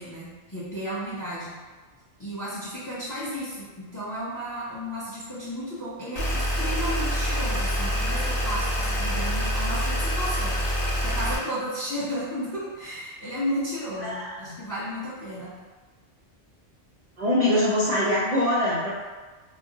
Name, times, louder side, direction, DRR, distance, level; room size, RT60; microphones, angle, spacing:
voice 1, 0.0-1.6 2.2-15.5, equal, 25° left, -9 dB, 0.5 m, -33 dB
sound 1, 6.2-11.4, equal, 50° left, 1.1 m, -26 dB
voice 2, 14.0-14.6 17.2-19.0, left 1 dB, 45° right, -9 dB, 0.5 m, -24 dB
2.5 x 2.0 x 3.7 m, 1.4 s
omnidirectional pair, 1.2 m